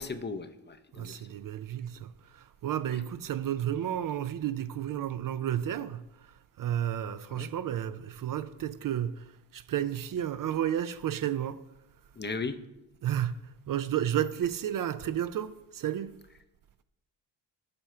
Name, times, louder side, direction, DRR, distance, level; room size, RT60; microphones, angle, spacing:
voice 1, 0.0-1.2 7.3-7.5 12.2-12.6, left 4 dB, 25° left, 0.6 m, -36 dB
voice 2, 0.9-11.6 13.0-16.1, right 10 dB, 50° right, 0.5 m, -32 dB
9.6 x 5.5 x 4.4 m
cardioid pair, 70°, 45 cm